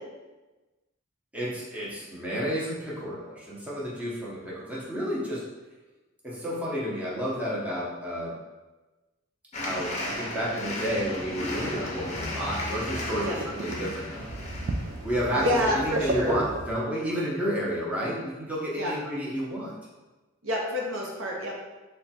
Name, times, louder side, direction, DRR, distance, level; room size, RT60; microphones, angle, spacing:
voice 1, 1.3-5.4 6.2-8.4 9.6-14.3 15.0-15.5 15.7-19.7, equal, 5° right, -7 dB, 0.7 m, -31 dB
sound 1, 9.5-15.4, left 1 dB, 30° left, 0.6 m, -35 dB
sound 2, 11.5-16.7, right 2 dB, 40° right, 0.3 m, -35 dB
voice 2, 15.3-16.4 18.8-18.9 20.4-21.6, left 1 dB, 65° right, -2 dB, 0.7 m, -28 dB
3.3 x 2.2 x 4.1 m, 1.2 s
head